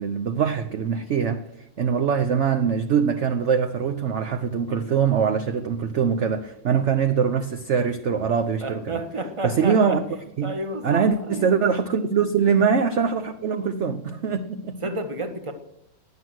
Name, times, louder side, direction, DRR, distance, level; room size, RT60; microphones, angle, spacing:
voice 1, 0.0-1.4 1.8-8.9 9.4-10.0 10.4-10.5 10.8-14.8, right 6 dB, 55° right, 8 dB, 0.8 m, -23 dB
voice 2, 8.6-10.0 10.4-11.6 14.8-15.5, right 1 dB, 20° right, 7 dB, 1.2 m, -31 dB
16.5 x 10.5 x 6.3 m, 0.81 s
omnidirectional pair, 2.1 m